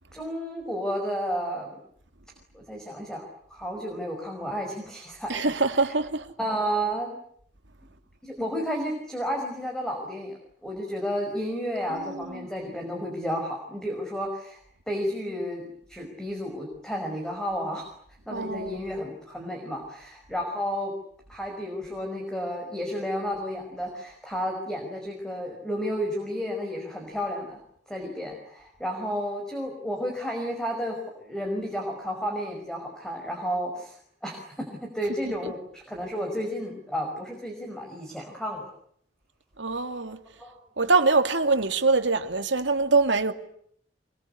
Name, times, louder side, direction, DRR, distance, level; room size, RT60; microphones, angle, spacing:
voice 1, 0.1-1.8 2.5-5.5 6.4-7.2 8.2-10.3 10.6-15.6 15.9-17.8 18.3-20.9 21.3-27.6 27.9-34.0 34.2-38.7 40.4-40.5, equal, 5° left, 5.3 m, -32 dB
voice 2, 5.3-6.3 11.9-12.5 18.3-18.8 35.2-35.5 39.6-40.2 40.8-43.3, right 3 dB, 80° right, 2.5 m, -24 dB
26.0 x 23.5 x 9.8 m
head